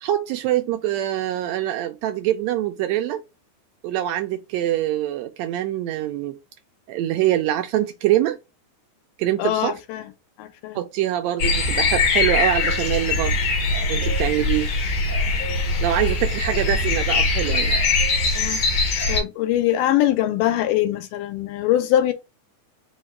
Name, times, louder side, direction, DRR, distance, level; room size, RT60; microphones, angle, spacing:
voice 1, 0.0-3.2 3.8-6.4 6.9-8.4 9.2-9.8 10.7-13.4 13.9-14.7 15.8-17.8, right 13 dB, 90° right, 1.5 m, -24 dB
voice 2, 9.4-10.1 10.4-10.8 18.4-18.6 19.1-22.1, left 12 dB, 85° left, 2.4 m, -22 dB
sound 1, 11.4-19.2, left 3 dB, 60° left, 1.4 m, -22 dB
5.2 x 2.3 x 4.3 m
omnidirectional pair, 3.7 m